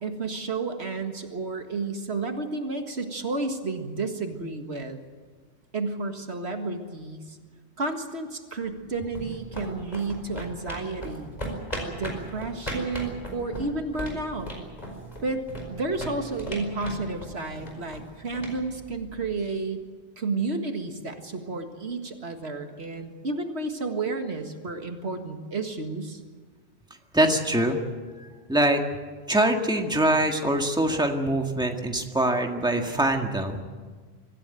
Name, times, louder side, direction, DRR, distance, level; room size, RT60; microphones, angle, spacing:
voice 1, 0.0-5.0 5.7-7.4 7.8-11.3 11.9-14.5 15.2-15.4 15.7-19.8 20.2-26.2, right 3 dB, 75° right, 5 dB, 2.0 m, -31 dB
sound 1, 8.7-19.5, right 1 dB, 35° left, 5.0 m, -38 dB
voice 2, 27.1-27.8 28.2-28.8 29.3-33.6, right 1 dB, 5° right, 3 dB, 1.8 m, -24 dB
25.0 x 15.0 x 9.1 m, 1.5 s
omnidirectional pair, 1.1 m